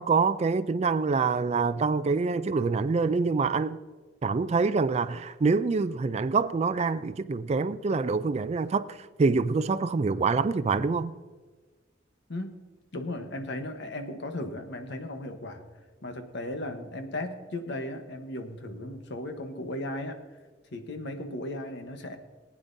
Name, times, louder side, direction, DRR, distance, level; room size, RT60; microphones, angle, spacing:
voice 1, 0.0-3.8 4.2-11.1, right 4 dB, 35° right, 0.3 m, -26 dB
voice 2, 12.9-15.6 16.0-20.2 20.7-22.2, left 1 dB, 65° left, 1.1 m, -36 dB
19.5 x 9.6 x 2.7 m
head